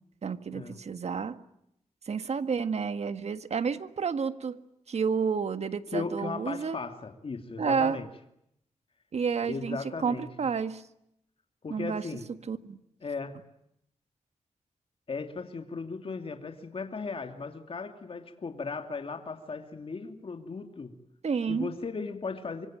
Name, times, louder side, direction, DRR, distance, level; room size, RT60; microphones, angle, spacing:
voice 1, 0.2-1.4 2.0-4.6 4.9-6.8 7.6-8.0 9.1-10.8 11.7-12.8 21.2-21.7, right 6 dB, 60° right, 11 dB, 1.7 m, -30 dB
voice 2, 5.9-8.1 9.4-10.2 11.6-12.2 13.0-13.4 15.1-20.9 21.5-22.7, left 4 dB, 50° left, 6 dB, 2.7 m, -37 dB
25.5 x 25.5 x 9.0 m, 0.77 s
wide cardioid pair, 120°, 13 cm